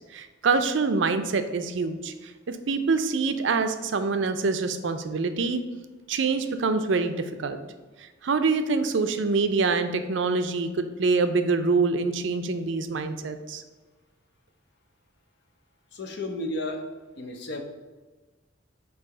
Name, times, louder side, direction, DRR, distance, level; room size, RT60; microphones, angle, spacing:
voice 1, 0.0-5.6 6.1-7.6 8.0-13.6, right 4 dB, 70° right, 9 dB, 0.5 m, -25 dB
voice 2, 15.9-16.9 17.2-17.6, left 1 dB, 60° left, 4 dB, 0.8 m, -32 dB
4.8 x 4.0 x 4.9 m, 1.2 s
head